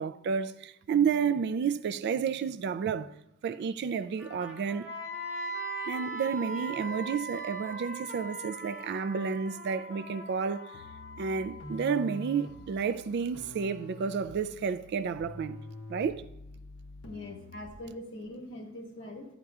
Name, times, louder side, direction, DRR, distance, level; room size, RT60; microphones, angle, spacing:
voice 1, 0.0-3.1 3.4-4.9 5.9-10.7 11.2-15.6 15.9-16.2, right 6 dB, 50° right, 0.3 m, -31 dB
Trumpet, 4.2-11.1, right 1 dB, 5° right, 1.2 m, -48 dB
Wind instrument woodwind instrument, 4.9-12.8, right 2 dB, 30° left, 1.6 m, -41 dB
sound 1, 10.7-17.9, left 1 dB, 85° left, 0.7 m, -46 dB
voice 2, 17.0-19.3, left 1 dB, 60° left, 1.5 m, -42 dB
11.0 x 9.5 x 2.4 m
head